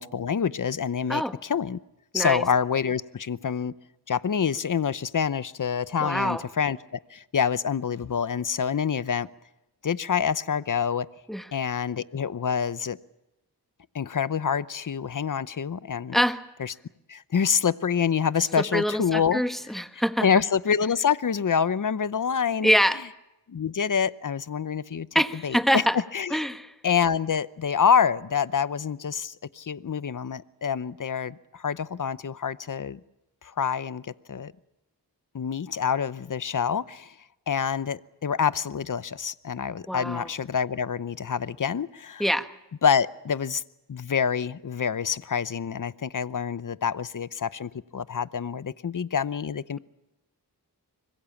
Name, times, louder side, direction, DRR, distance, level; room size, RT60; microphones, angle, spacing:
voice 1, 0.0-1.8 2.1-3.7 4.1-9.3 9.8-11.1 11.5-13.0 13.9-16.2 16.6-16.7 17.1-19.4 20.2-22.7 23.5-25.1 25.4-25.8 26.1-26.4 26.8-33.0 33.4-34.5 35.3-37.1 37.5-42.2 42.8-43.6 43.9-49.8, left 7 dB, 50° left, 16 dB, 0.8 m, -26 dB
voice 2, 6.0-6.4 11.3-11.5 16.1-16.5 18.6-20.3 22.6-23.0 25.1-26.0 26.3-26.7 39.9-40.3 42.2-42.5, equal, ahead, 8 dB, 1.5 m, -25 dB
25.0 x 21.5 x 7.2 m, 0.93 s
cardioid pair, 50°, 40 cm